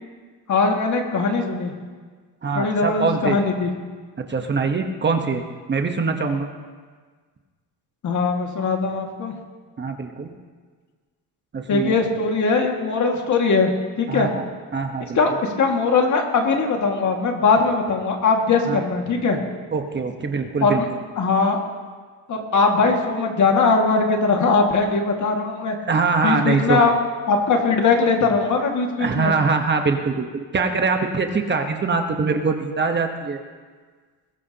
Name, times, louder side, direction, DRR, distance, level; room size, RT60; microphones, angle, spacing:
voice 1, 0.5-1.7 2.5-3.7 8.0-9.3 11.7-13.7 14.0-14.3 15.2-19.4 20.6-20.9 21.2-21.6 22.3-25.8 26.2-26.9 27.3-29.3, left 4 dB, 45° left, 2 dB, 2.0 m, -20 dB
voice 2, 2.4-3.4 4.3-5.4 5.7-6.5 9.8-10.3 11.5-11.9 14.1-14.4 14.7-15.4 18.7-18.8 19.7-20.8 25.9-26.9 29.0-33.4, right 4 dB, 30° right, 4 dB, 1.1 m, -23 dB
21.0 x 14.5 x 2.9 m, 1.5 s
cardioid pair, 125°, 39 cm